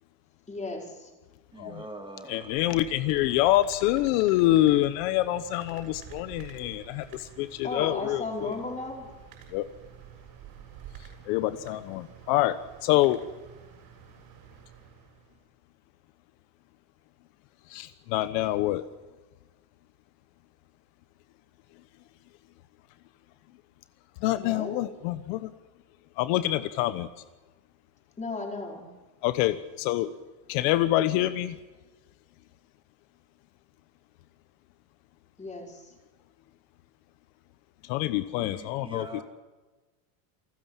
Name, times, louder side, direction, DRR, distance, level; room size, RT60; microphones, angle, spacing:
voice 1, 0.5-1.1 7.6-9.1 24.3-24.8 28.2-28.9 35.4-35.9, left 3 dB, 15° left, 1 dB, 4.8 m, -35 dB
voice 2, 1.5-2.8 38.4-39.2, right 2 dB, 10° right, 3 dB, 2.6 m, -43 dB
voice 3, 2.3-8.5 9.5-9.7 11.3-13.2 17.7-18.8 24.2-25.5 26.2-27.1 29.2-30.1 30.5-31.6 37.9-39.0, left 15 dB, 70° left, 12 dB, 1.2 m, -26 dB
sound 1, 2.4-15.4, right 9 dB, 50° right, 7.7 m, -49 dB
28.5 x 14.5 x 7.3 m, 1.2 s
cardioid pair, 140°, 45 cm